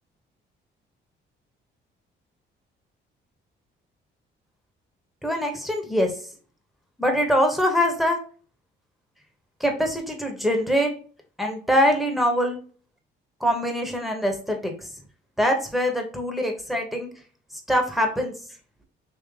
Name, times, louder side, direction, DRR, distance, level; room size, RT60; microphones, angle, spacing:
voice 1, 5.2-6.1 7.0-8.2 9.6-10.9 11.4-12.6 13.4-14.7 15.4-17.1 17.7-18.4, equal, ahead, 3 dB, 1.0 m, -23 dB
3.7 x 2.9 x 3.2 m, 0.42 s
cardioid pair, 90°, 20 cm